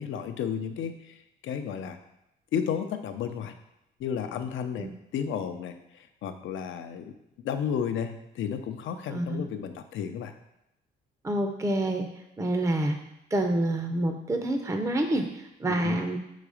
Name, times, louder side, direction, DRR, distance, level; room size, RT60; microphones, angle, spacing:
voice 1, 0.0-2.0 2.5-3.5 4.0-7.1 7.4-10.3 15.7-16.0, left 8 dB, 75° left, 8 dB, 0.6 m, -33 dB
voice 2, 9.1-9.4 11.2-12.1 12.4-13.0 13.3-16.2, right 1 dB, 15° right, 4 dB, 0.6 m, -27 dB
4.8 x 4.0 x 4.9 m, 0.85 s
cardioid pair, 90°, 20 cm